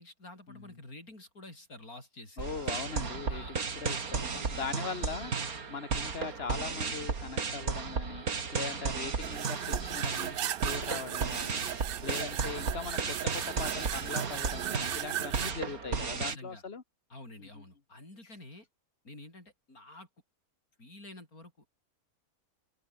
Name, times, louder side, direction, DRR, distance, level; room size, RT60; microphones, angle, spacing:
voice 1, 0.0-2.5 3.3-3.5 4.3-5.1 16.1-16.6 17.1-18.7 19.0-20.1 20.8-21.7, left 2 dB, 75° left, 7.8 m, -49 dB
voice 2, 2.4-5.3 5.7-16.8 17.4-17.6, left 5 dB, 40° left, 2.2 m, -40 dB
sound 1, 2.4-16.4, right 5 dB, 75° right, 2.7 m, -34 dB
sound 2, 9.2-15.5, right 11 dB, 90° right, 0.5 m, -37 dB
open air
omnidirectional pair, 1.6 m